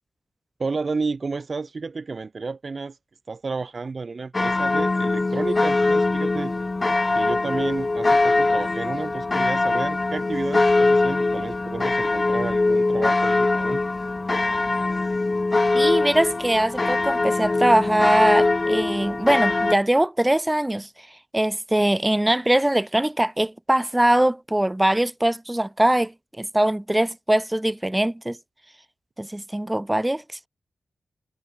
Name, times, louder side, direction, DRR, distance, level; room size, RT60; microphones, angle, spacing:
voice 1, 0.6-3.0 3.3-6.5 7.1-13.8, right 4 dB, 50° right, 4.5 m, -31 dB
sound 1, 4.3-19.8, left 3 dB, 35° left, 1.0 m, -22 dB
voice 2, 15.7-20.9 21.3-28.4 29.2-30.5, right 1 dB, 15° right, 2.0 m, -22 dB
cardioid pair, 55°, 0 cm